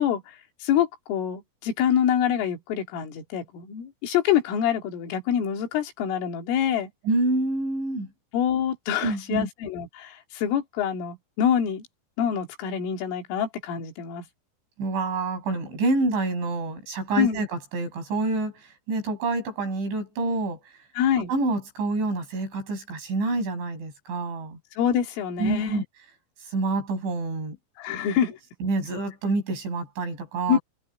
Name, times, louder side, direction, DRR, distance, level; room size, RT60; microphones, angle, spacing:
voice 1, 0.0-6.9 8.3-11.9 12.2-14.2 17.2-17.4 21.0-21.3 24.7-25.8 27.8-28.3 30.5-30.6, left 9 dB, 75° left, 4.8 m, -26 dB
voice 2, 7.1-8.1 9.0-9.5 14.8-20.6 21.3-24.6 25.4-25.8 26.5-27.6 28.6-30.6, right 3 dB, 60° right, 10.5 m, -27 dB
omnidirectional pair, 5.9 m